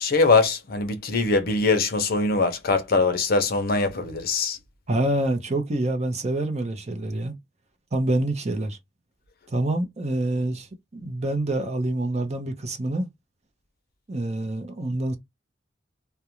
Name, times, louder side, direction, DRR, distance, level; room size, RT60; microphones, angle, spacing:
voice 1, 0.0-4.6, left 3 dB, 55° left, 0.6 m, -22 dB
voice 2, 4.9-7.3 7.9-8.8 9.5-10.7 10.9-13.1 14.1-15.1, right 1 dB, 35° right, 0.6 m, -26 dB
2.4 x 2.2 x 2.9 m
head